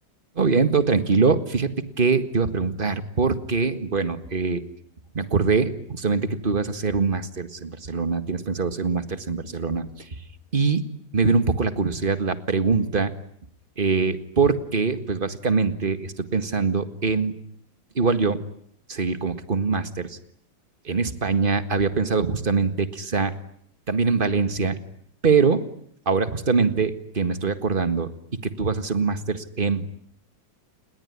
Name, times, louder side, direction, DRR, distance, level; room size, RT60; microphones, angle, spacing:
voice 1, 0.4-1.7 2.0-4.6 5.1-10.2 10.5-10.8 11.1-13.1 13.8-17.4 18.0-18.4 18.9-20.2 20.8-23.3 23.9-24.8 25.2-25.6 26.1-28.1 28.4-29.8, right 4 dB, 30° right, 10 dB, 1.8 m, -23 dB
28.5 x 21.0 x 9.8 m, 0.67 s
omnidirectional pair, 2.0 m